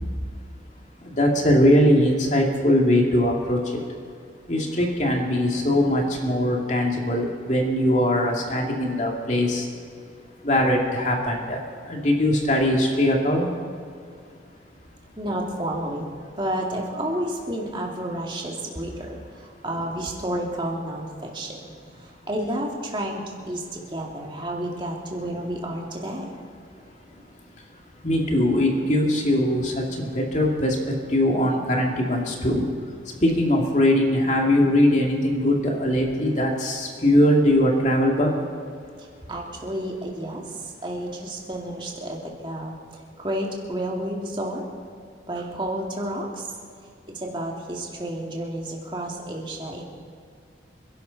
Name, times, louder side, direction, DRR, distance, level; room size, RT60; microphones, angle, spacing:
voice 1, 1.0-3.8 4.5-9.7 10.4-13.5 28.0-32.7 33.0-38.4, left 1 dB, 40° left, 0 dB, 2.5 m, -21 dB
voice 2, 15.2-16.1 16.4-21.7 22.0-26.4 39.0-44.7 45.3-46.5 47.1-49.8, right 1 dB, 25° right, -1 dB, 2.4 m, -31 dB
27.0 x 11.5 x 4.2 m, 2.2 s
head